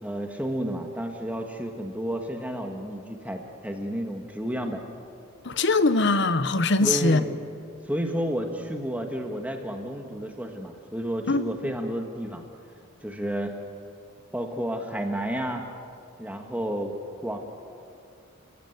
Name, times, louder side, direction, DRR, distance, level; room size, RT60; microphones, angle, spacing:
voice 1, 0.0-4.8 6.8-7.3 7.8-12.4 13.0-13.5 14.3-15.7 16.2-17.0 17.2-17.4, right 1 dB, 5° right, 3 dB, 1.6 m, -31 dB
voice 2, 5.4-7.2 11.3-11.7, left 3 dB, 55° left, 13 dB, 1.0 m, -22 dB
29.5 x 16.5 x 9.4 m, 2.4 s
head